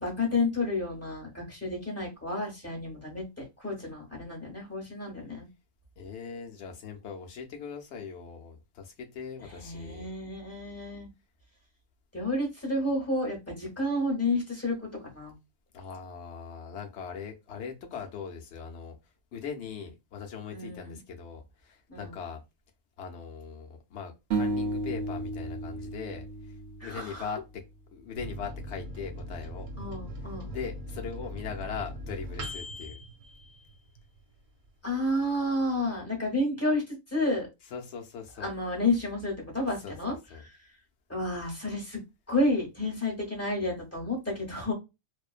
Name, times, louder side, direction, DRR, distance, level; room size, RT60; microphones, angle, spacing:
voice 1, 0.0-5.5 9.4-11.1 12.1-15.3 20.5-21.0 21.9-22.1 26.8-27.3 29.8-30.5 34.8-37.5 38.4-40.1 40.4-40.6 41.1-42.0 42.3-44.7, left 2 dB, 15° left, 0.8 m, -31 dB
voice 2, 6.0-10.1 15.7-19.0 19.3-22.4 23.0-27.6 27.9-29.7 30.5-33.0 37.7-38.5 39.8-40.4, left 6 dB, 65° left, 0.8 m, -40 dB
sound 1, 24.3-27.5, right 2 dB, 65° right, 0.7 m, -33 dB
Microwave oven, 28.2-34.2 34.6-34.7 35.0-35.6, equal, 90° right, 1.1 m, -40 dB
2.5 x 2.1 x 2.3 m
omnidirectional pair, 1.3 m